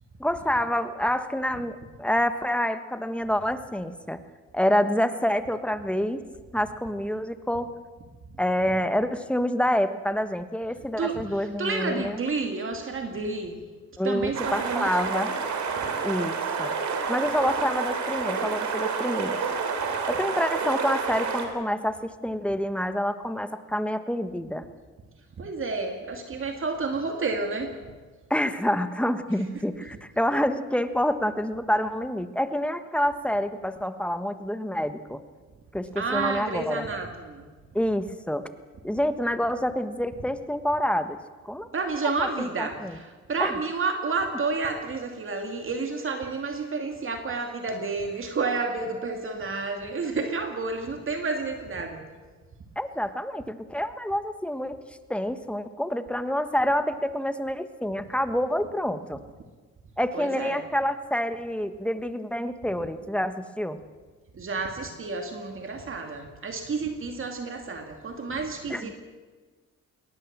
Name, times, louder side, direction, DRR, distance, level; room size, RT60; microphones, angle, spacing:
voice 1, 0.2-4.2 4.5-6.2 6.5-7.7 8.4-12.2 14.0-15.3 16.0-16.7 17.1-19.4 20.1-24.7 28.3-35.2 35.7-36.9 37.7-38.5 38.8-41.2 41.4-41.7 42.2-43.0 43.4-43.5 52.7-54.8 55.1-59.2 60.0-63.8 68.7-68.9, equal, 5° left, 10 dB, 1.4 m, -27 dB
voice 2, 11.0-13.6 14.0-15.4 25.4-27.8 36.0-37.5 41.7-52.1 60.1-60.6 64.3-68.9, right 4 dB, 45° right, 4 dB, 2.3 m, -30 dB
sound 1, 14.3-21.5, right 5 dB, 70° right, 3.3 m, -29 dB
21.0 x 18.5 x 7.4 m, 1.4 s
cardioid pair, 90°, 30 cm